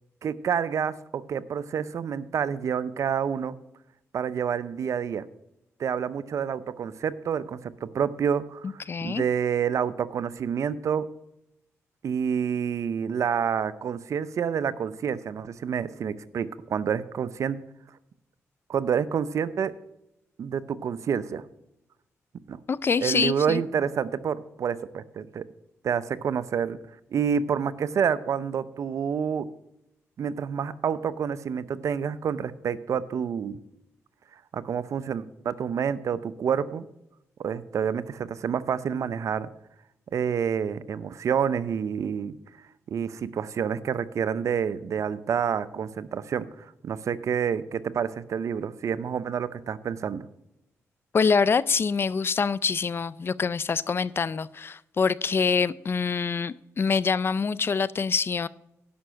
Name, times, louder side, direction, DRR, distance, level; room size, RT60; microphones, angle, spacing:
voice 1, 0.2-3.6 4.1-5.2 5.8-11.1 12.0-17.6 18.7-19.7 20.4-21.4 22.5-22.6 23.0-25.4 25.8-26.8 27.1-29.5 30.2-33.6 34.5-36.8 37.4-39.5 40.1-42.4 42.9-46.5 46.8-50.3, right 7 dB, 70° right, 15 dB, 0.6 m, -28 dB
voice 2, 8.6-9.2 22.7-23.6 51.1-58.5, left 5 dB, 45° left, 19 dB, 0.4 m, -25 dB
11.0 x 5.7 x 6.3 m, 0.84 s
cardioid pair, 75°, 6 cm